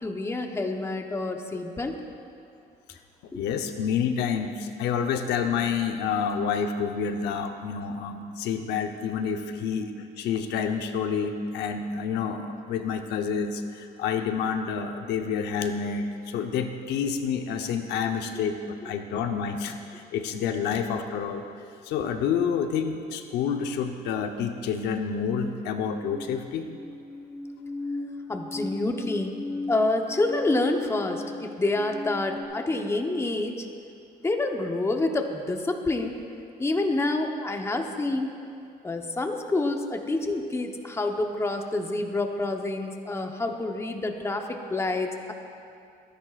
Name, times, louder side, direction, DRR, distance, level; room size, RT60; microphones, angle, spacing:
voice 1, 0.0-2.0 3.3-3.4 18.8-18.9 28.3-29.4 29.7-33.7 34.2-36.2 36.6-38.3 38.8-45.3, left 2 dB, 15° left, 4 dB, 0.9 m, -28 dB
voice 2, 3.4-21.5 21.9-26.7, left 6 dB, 85° left, 6 dB, 0.8 m, -28 dB
sound 1, 26.0-32.4, left 2 dB, ahead, 2.3 m, -37 dB
24.5 x 10.5 x 2.5 m, 2.5 s
cardioid pair, 110°, 17 cm